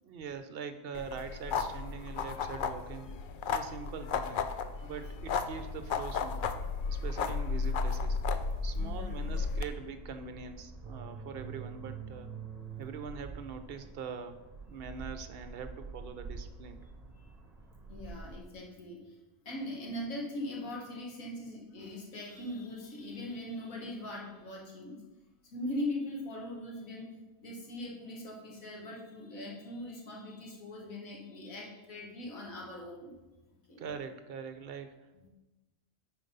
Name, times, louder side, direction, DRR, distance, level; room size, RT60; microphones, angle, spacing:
voice 1, 0.0-3.1 3.5-4.5 4.8-6.4 6.9-8.2 8.6-12.3 12.8-14.4 14.7-16.8 33.8-35.0, right 6 dB, 55° right, 9 dB, 0.8 m, -43 dB
sound 1, 0.9-9.7, left 5 dB, 65° left, 0.5 m, -34 dB
sound 2, 5.4-18.4, right 5 dB, 35° right, 1.0 m, -47 dB
voice 2, 8.8-9.3 17.9-19.2 19.5-25.0 25.4-33.1 33.7-33.9 35.1-35.3, left 1 dB, 90° left, -2 dB, 2.1 m, -41 dB
9.2 x 4.5 x 5.3 m, 1.1 s
omnidirectional pair, 1.4 m